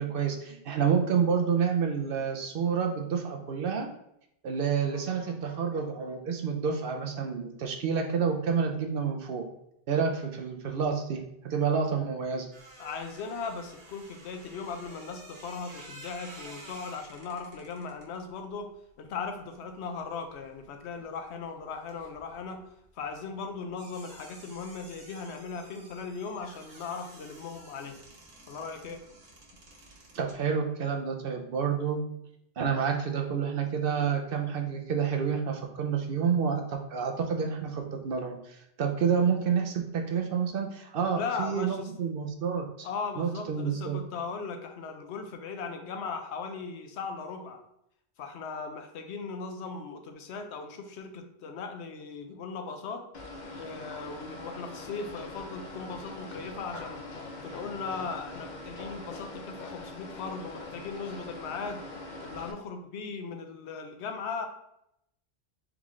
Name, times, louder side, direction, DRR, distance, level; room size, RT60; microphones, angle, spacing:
voice 1, 0.0-3.9 4.4-9.4 9.9-12.5 30.1-32.0 32.6-42.9 43.2-44.0, right 6 dB, 65° right, 3 dB, 0.7 m, -29 dB
voice 2, 4.9-5.7 12.8-18.7 19.0-28.0 28.5-29.0 41.1-41.9 42.8-47.6 48.2-53.0 53.6-57.0 57.4-61.8 62.2-64.4, left 5 dB, 80° left, 5 dB, 0.9 m, -38 dB
sound 1, 12.5-20.6 20.9-30.4, right 2 dB, 80° right, 1.3 m, -52 dB
sound 2, 53.1-62.5, left 2 dB, 55° left, 0.6 m, -42 dB
3.6 x 3.6 x 3.1 m, 0.78 s
omnidirectional pair, 1.1 m